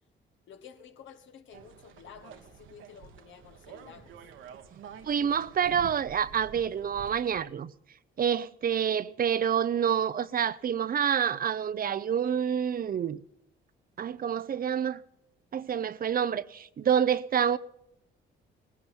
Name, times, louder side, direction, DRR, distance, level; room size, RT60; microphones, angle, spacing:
voice 1, 0.5-4.1 5.6-5.7, left 8 dB, 75° left, 1.7 m, -51 dB
sound 1, 1.5-7.4, right 6 dB, 80° right, 1.5 m, -49 dB
voice 2, 5.0-7.7 8.2-13.2 14.0-15.0 15.5-17.6, right 8 dB, 45° right, 0.7 m, -27 dB
19.0 x 15.5 x 4.5 m
cardioid pair, 90°, 20 cm